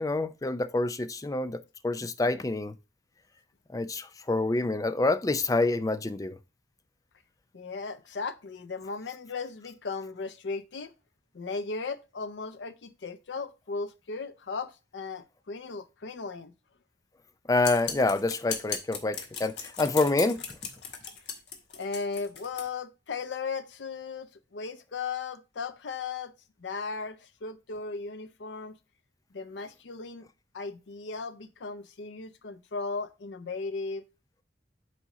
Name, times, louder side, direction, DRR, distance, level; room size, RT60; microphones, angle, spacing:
voice 1, 0.0-2.7 3.7-6.4 17.5-20.4, left 2 dB, 20° left, 0.4 m, -27 dB
voice 2, 7.5-10.9 11.3-16.5 21.7-26.3 26.6-28.8 29.3-30.3 30.5-34.0, left 4 dB, 90° left, 0.6 m, -36 dB
sound 1, 17.6-22.7, left 6 dB, 75° left, 1.3 m, -37 dB
7.5 x 4.3 x 3.7 m
head